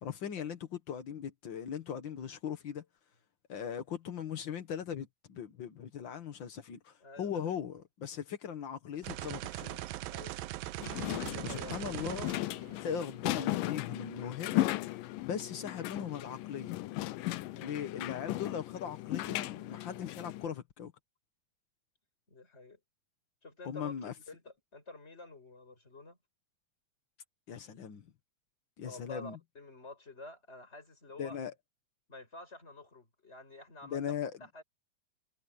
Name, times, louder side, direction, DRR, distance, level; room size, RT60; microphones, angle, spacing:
voice 1, 0.0-2.8 3.5-9.8 11.4-12.3 12.8-14.7 15.2-16.8 17.6-20.9 23.6-24.1 27.5-28.1 28.8-29.4 31.2-31.5 33.8-34.5, left 8 dB, 60° left, 1.2 m, -39 dB
voice 2, 7.0-7.6 10.1-10.4 11.3-11.7 17.5-17.8 22.3-22.8 23.4-26.2 28.8-31.4 32.1-34.1 34.4-34.6, left 2 dB, 15° left, 6.0 m, -50 dB
sound 1, 9.0-13.2, right 15 dB, 90° right, 2.5 m, -41 dB
sound 2, 10.8-20.5, left 16 dB, 80° left, 2.3 m, -36 dB
omnidirectional pair, 4.1 m